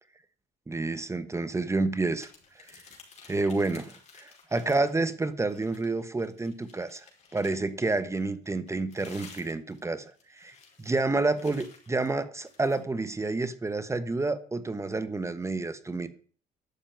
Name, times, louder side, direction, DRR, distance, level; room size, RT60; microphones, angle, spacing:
voice 1, 0.7-2.3 2.6-2.8 3.3-7.0 7.3-16.1, right 3 dB, 15° right, 13 dB, 1.2 m, -29 dB
sound 1, 2.2-5.1 5.4-7.7 8.4-12.8, left 5 dB, 40° left, 5.3 m, -53 dB
12.0 x 7.4 x 9.2 m, 0.43 s
cardioid pair, 110°, 17 cm